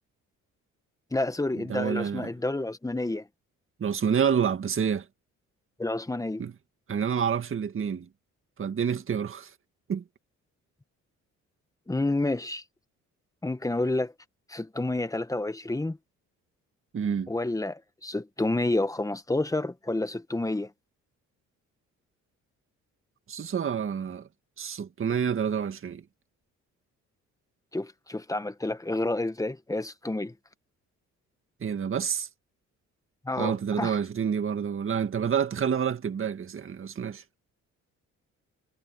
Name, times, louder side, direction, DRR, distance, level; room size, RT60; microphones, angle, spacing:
voice 1, 1.1-3.3 5.8-6.4 11.9-12.6 13.4-14.1 14.5-16.0 17.3-20.7 27.7-30.3 33.2-34.0, left 2 dB, 10° left, 1.3 m, -29 dB
voice 2, 1.7-2.3 3.8-5.1 6.4-6.5 6.9-8.1 8.6-9.5 9.9-10.0 16.9-17.3 23.3-24.3 24.6-26.0 31.6-32.3 33.4-37.2, right 7 dB, 45° right, 2.0 m, -28 dB
cardioid pair, 90°, 30 cm